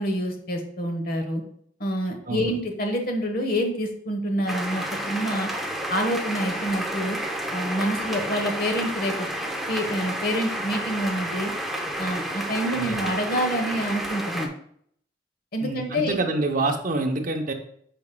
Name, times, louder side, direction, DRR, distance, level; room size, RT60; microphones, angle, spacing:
voice 1, 0.0-1.4 1.8-5.5 5.9-7.2 7.5-9.3 9.7-11.5 12.0-14.5 15.5-16.2, equal, 55° left, 5 dB, 1.1 m, -27 dB
sound 1, 4.5-14.5, right 1 dB, ahead, 0.6 m, -30 dB
voice 2, 15.6-17.5, right 2 dB, 50° right, 4 dB, 0.7 m, -26 dB
8.9 x 5.0 x 2.2 m, 0.65 s
head